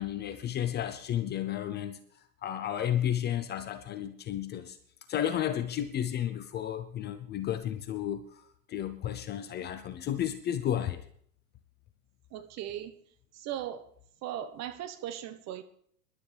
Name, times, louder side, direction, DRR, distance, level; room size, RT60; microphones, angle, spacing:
voice 1, 0.0-2.0 2.4-4.8 5.1-8.4 8.7-11.0, left 10 dB, 20° left, 0.6 m, -32 dB
voice 2, 12.3-12.9 13.3-13.9 14.2-15.6, right 11 dB, 35° right, 1.2 m, -38 dB
26.5 x 11.5 x 3.4 m
hypercardioid pair, 105°, 46 cm